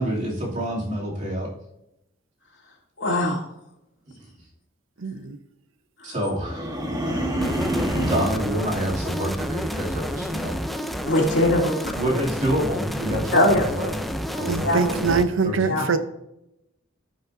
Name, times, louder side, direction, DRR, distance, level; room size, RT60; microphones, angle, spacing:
voice 1, 0.0-1.5 6.0-6.8 8.0-10.6 11.9-13.9 14.3-15.2 15.4-15.9, equal, 40° right, -3 dB, 2.6 m, -27 dB
voice 2, 3.0-3.4 11.0-11.9 13.3-13.6 14.6-14.8 15.7-15.8, left 1 dB, 60° left, -2 dB, 2.9 m, -21 dB
voice 3, 5.0-5.4 14.4-16.0, right 4 dB, 80° right, 10 dB, 0.7 m, -23 dB
sound 1, 6.4-8.5, equal, 20° right, 1.3 m, -26 dB
sound 2, 7.4-15.2, equal, ahead, 0.4 m, -30 dB
16.0 x 5.5 x 2.7 m, 0.84 s
head